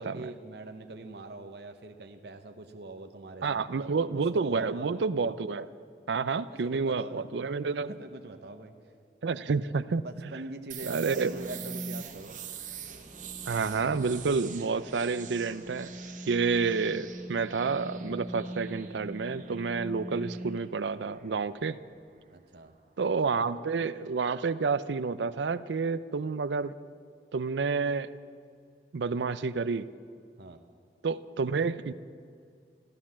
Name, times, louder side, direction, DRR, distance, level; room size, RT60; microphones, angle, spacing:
voice 1, 0.0-4.9 6.3-8.7 10.0-12.4 22.3-22.8 30.4-30.6, right 2 dB, 70° right, 6 dB, 0.9 m, -43 dB
voice 2, 3.4-5.7 6.1-7.9 9.2-10.0 10.8-11.3 13.5-15.9 16.3-21.8 23.0-26.7 27.3-28.1 28.9-29.9 31.0-31.9, right 4 dB, 85° right, 14 dB, 0.5 m, -29 dB
sound 1, 10.7-22.3, right 9 dB, 45° right, 1.4 m, -46 dB
sound 2, 10.9-20.6, right 1 dB, 5° right, 0.6 m, -43 dB
14.0 x 13.0 x 7.3 m, 2.2 s
head